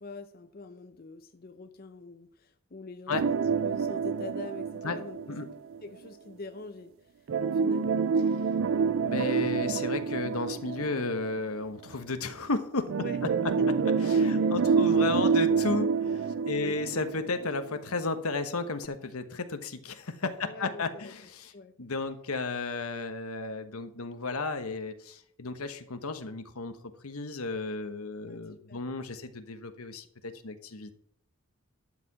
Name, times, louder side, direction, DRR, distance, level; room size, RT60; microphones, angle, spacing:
voice 1, 0.0-5.2 5.8-7.9 13.0-13.2 13.5-13.7 14.3-14.9 16.5-16.8 20.4-21.1 21.5-21.7 28.3-28.4 28.7-28.8, left 3 dB, 45° left, 8 dB, 0.7 m, -44 dB
sound 1, 3.1-5.8 7.3-11.6 12.9-17.8 18.1-18.2 18.8-18.9, right 5 dB, 60° right, 0.4 m, -27 dB
voice 2, 9.0-12.9 13.2-13.3 14.1-21.5 21.8-26.8 27.0-31.0, left 3 dB, 85° left, 9 dB, 1.2 m, -33 dB
12.0 x 5.0 x 7.5 m, 0.65 s
head